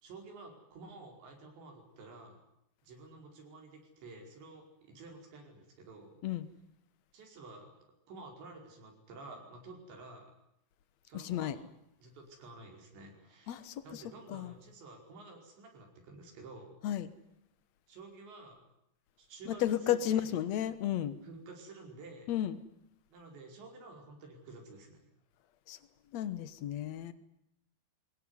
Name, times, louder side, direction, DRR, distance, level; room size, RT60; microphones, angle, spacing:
voice 1, 0.0-2.4 2.8-6.2 7.1-7.8 8.1-10.3 11.1-11.6 12.0-16.8 17.9-18.6 19.2-20.3 21.2-22.3 23.1-25.1, right 3 dB, 80° right, 2 dB, 7.3 m, -51 dB
voice 2, 11.1-11.6 13.5-14.0 14.3-14.5 16.8-17.1 19.5-21.2 22.3-22.6 25.7-25.8 26.1-27.1, left 11 dB, 75° left, 13 dB, 1.5 m, -33 dB
23.5 x 19.5 x 9.7 m, 0.80 s
omnidirectional pair, 5.0 m